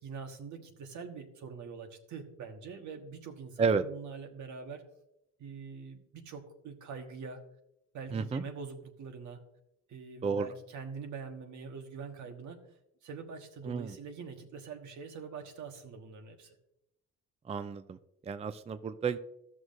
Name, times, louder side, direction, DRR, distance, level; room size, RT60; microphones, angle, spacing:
voice 1, 0.0-4.8 5.4-7.4 7.9-9.4 9.9-12.6 13.0-16.6, right 5 dB, 75° right, 4 dB, 1.4 m, -44 dB
voice 2, 8.1-8.4 10.2-10.5 13.6-14.0 17.5-19.2, right 5 dB, 20° right, 11 dB, 0.4 m, -31 dB
14.0 x 6.3 x 2.5 m, 0.83 s
cardioid pair, 90°, 30 cm